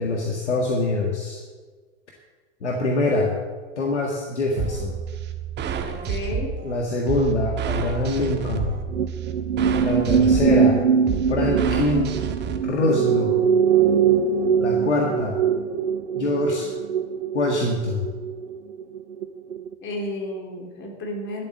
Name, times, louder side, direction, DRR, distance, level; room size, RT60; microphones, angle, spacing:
voice 1, 0.0-1.4 2.6-3.3 3.8-5.0 6.6-8.7 9.8-10.8 11.3-12.1 12.6-13.4 14.6-15.4 16.2-16.7 17.3-18.0, left 2 dB, 80° left, 0 dB, 1.7 m, -24 dB
sound 1, 4.6-12.6, right 8 dB, 30° right, 1.4 m, -29 dB
voice 2, 5.8-6.5 10.3-10.4 19.8-21.5, left 1 dB, 35° left, 1 dB, 3.7 m, -32 dB
sound 2, 8.9-19.3 19.5-19.7, right 7 dB, 85° right, 0.7 m, -22 dB
12.0 x 7.9 x 7.6 m, 1.4 s
figure-of-eight pair, 90°, 34 cm